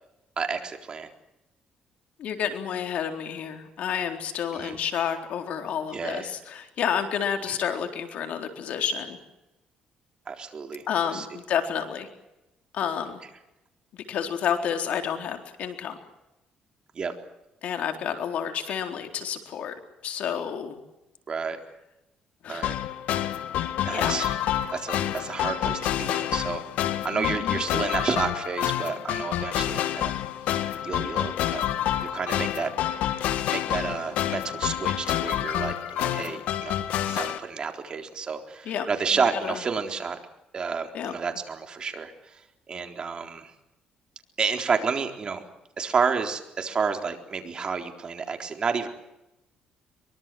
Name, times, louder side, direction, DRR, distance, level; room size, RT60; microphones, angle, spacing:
voice 1, 0.4-1.1 4.5-4.8 5.9-6.3 7.5-7.6 10.3-10.8 11.1-11.3 16.9-17.1 21.3-21.6 22.5-22.8 23.8-24.3 24.7-26.6 27.0-30.1 30.8-31.7 32.1-32.7 33.5-36.8 37.1-40.2 40.5-42.4 42.7-43.5 44.4-45.4 45.8-48.9, right 5 dB, 35° right, 5 dB, 4.0 m, -30 dB
voice 2, 2.2-9.2 10.9-12.1 12.7-13.2 13.9-16.0 17.6-19.7 20.0-20.8 22.4-22.6 23.9-24.2 27.1-27.6 38.7-38.9 39.4-39.6 40.9-41.2, left 8 dB, 70° left, 5 dB, 4.1 m, -30 dB
sound 1, 22.6-37.4, left 12 dB, 85° left, 1.8 m, -28 dB
24.0 x 23.5 x 7.8 m, 0.91 s
cardioid pair, 115°, 2 cm